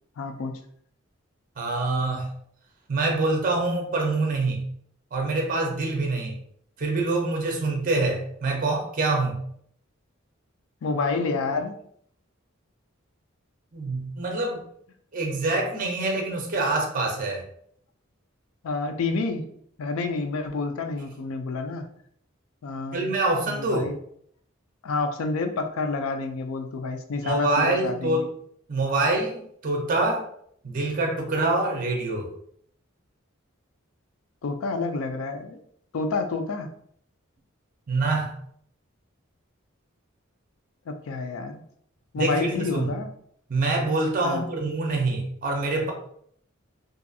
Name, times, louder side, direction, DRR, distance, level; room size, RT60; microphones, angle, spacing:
voice 1, 0.2-0.6 10.8-11.7 18.6-19.4 19.8-21.9 22.6-23.1 23.5-23.9 24.8-28.3 34.4-35.6 35.9-36.7 40.9-41.6 42.1-43.1 44.2-44.4, left 3 dB, 80° left, 7 dB, 0.4 m, -29 dB
voice 2, 1.6-2.3 2.9-4.6 5.1-6.4 6.8-9.4 13.7-14.6 15.1-17.5 22.9-23.9 27.2-28.3 28.7-30.3 30.6-32.3 37.9-38.4 42.2-42.9 43.5-45.9, right 2 dB, 40° right, 2 dB, 0.5 m, -25 dB
2.5 x 2.3 x 2.6 m, 0.65 s
head